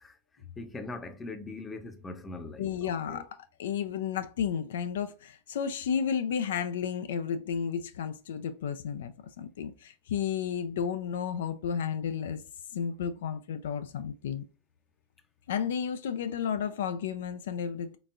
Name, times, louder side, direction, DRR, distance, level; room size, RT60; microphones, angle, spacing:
voice 1, 0.0-3.3, left 2 dB, 15° left, 0.6 m, -42 dB
voice 2, 2.6-3.3 3.6-12.4 12.7-14.4 15.5-18.0, left 7 dB, 65° left, 0.3 m, -32 dB
3.8 x 3.5 x 2.4 m
figure-of-eight pair, 95°, 0 cm